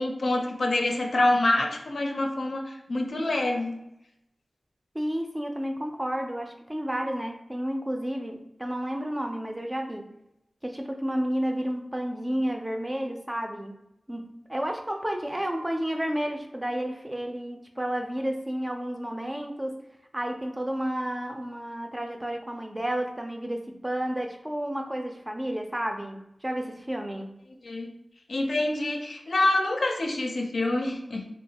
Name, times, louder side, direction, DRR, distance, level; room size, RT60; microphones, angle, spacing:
voice 1, 0.0-3.7 27.6-27.9 28.3-31.2, left 2 dB, 80° left, 1 dB, 0.4 m, -26 dB
voice 2, 4.9-10.1 10.6-13.8 14.1-19.8 20.1-27.3, right 1 dB, 20° right, 3 dB, 0.4 m, -31 dB
2.7 x 2.3 x 2.8 m, 0.84 s
cardioid pair, 45°, 0 cm